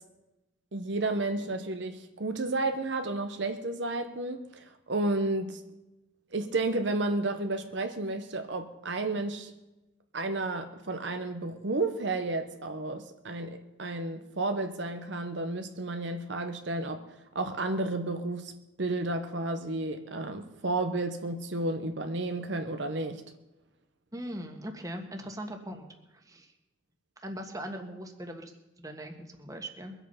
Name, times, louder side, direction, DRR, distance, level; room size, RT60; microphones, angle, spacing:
voice 1, 0.7-5.6 6.3-9.5 10.1-18.5 18.8-23.2, right 2 dB, 60° right, 7 dB, 0.9 m, -32 dB
voice 2, 24.1-26.5 27.2-29.9, equal, 20° right, 4 dB, 1.5 m, -40 dB
22.5 x 8.3 x 5.6 m, 1.0 s
head